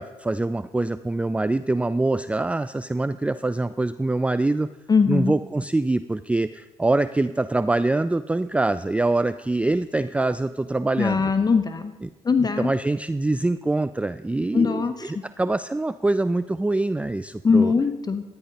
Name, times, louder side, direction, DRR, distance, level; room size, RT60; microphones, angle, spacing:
voice 1, 0.0-4.7 5.1-11.3 12.0-12.1 12.4-17.7, right 2 dB, 10° right, 14 dB, 0.4 m, -24 dB
voice 2, 4.9-5.4 11.0-11.9 12.2-12.7 14.5-15.1 17.4-18.2, left 5 dB, 35° left, 9 dB, 1.0 m, -21 dB
12.5 x 9.9 x 5.4 m, 1.1 s
supercardioid pair, 65°, 12 cm